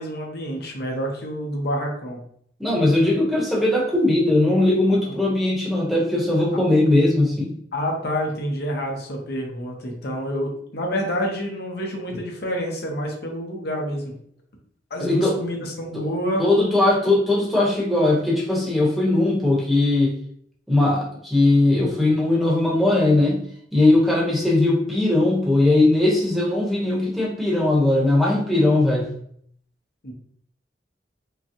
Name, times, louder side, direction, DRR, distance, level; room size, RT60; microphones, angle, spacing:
voice 1, 0.0-2.2 5.0-5.1 7.7-14.1 14.9-16.4 30.0-30.1, equal, 65° left, 0 dB, 1.0 m, -28 dB
voice 2, 2.6-7.5 15.0-15.4 15.9-16.0 16.4-20.1 20.7-23.4 23.7-29.1, left 2 dB, ahead, -4 dB, 1.0 m, -19 dB
5.1 x 2.2 x 3.0 m, 0.65 s
head